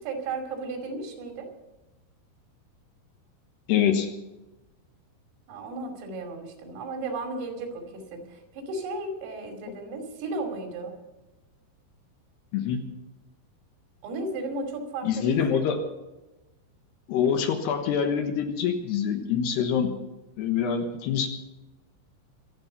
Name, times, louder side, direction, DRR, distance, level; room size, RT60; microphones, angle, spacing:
voice 1, 0.0-1.5 5.5-11.0 14.0-15.6, right 2 dB, 90° right, 3 dB, 5.3 m, -34 dB
voice 2, 3.7-4.1 12.5-12.8 15.0-15.8 17.1-19.9 20.4-21.3, left 7 dB, 70° left, 6 dB, 3.0 m, -25 dB
24.5 x 8.9 x 5.6 m, 1.0 s
omnidirectional pair, 5.7 m